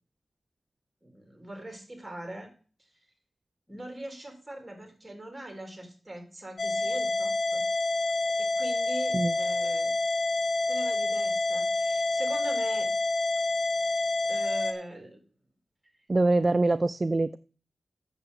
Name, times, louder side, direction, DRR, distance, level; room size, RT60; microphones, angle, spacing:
voice 1, 1.0-2.5 2.9-3.0 3.7-7.6 8.4-9.9 10.7-12.9 14.3-15.2, right 1 dB, 15° right, 3 dB, 3.3 m, -41 dB
sound 1, 6.6-14.7, left 2 dB, 50° left, 1.3 m, -28 dB
voice 2, 16.1-17.4, right 2 dB, 35° right, 14 dB, 0.3 m, -24 dB
8.0 x 6.7 x 5.5 m, 0.38 s
wide cardioid pair, 75°, 0 cm